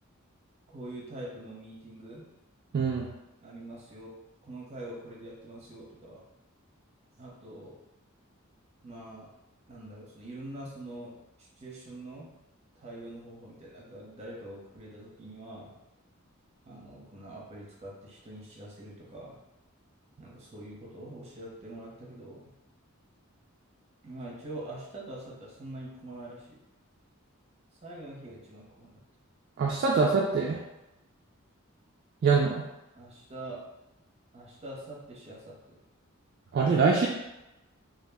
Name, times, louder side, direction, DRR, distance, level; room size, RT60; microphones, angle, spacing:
voice 1, 0.7-2.3 3.4-4.1 4.4-6.2 7.2-7.7 8.8-9.3 9.7-11.1 11.6-12.3 12.8-15.7 16.6-19.4 20.2-22.5 24.0-26.6 27.8-29.0 32.9-33.6 34.3-35.8, right 1 dB, 30° right, -4 dB, 0.7 m, -44 dB
voice 2, 2.7-3.1 29.6-30.6 32.2-32.6 36.5-37.1, right 4 dB, 50° right, -2 dB, 0.3 m, -24 dB
2.3 x 2.1 x 3.4 m, 0.95 s
head